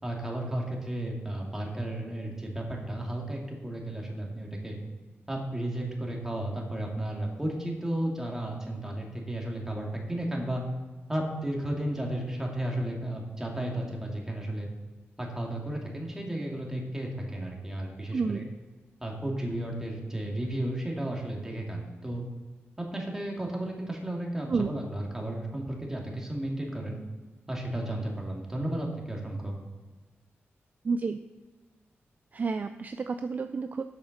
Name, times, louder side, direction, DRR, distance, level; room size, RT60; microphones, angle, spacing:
voice 1, 0.0-4.8 5.3-10.6 11.1-14.7 15.2-18.5 19.0-22.2 22.8-27.0 27.5-29.5, right 1 dB, 10° right, -1 dB, 2.3 m, -33 dB
voice 2, 18.1-18.5 24.5-24.7 30.8-31.2 32.3-33.8, right 4 dB, 40° right, 9 dB, 0.4 m, -30 dB
8.1 x 7.0 x 6.5 m, 1.3 s
wide cardioid pair, 120°, 5 cm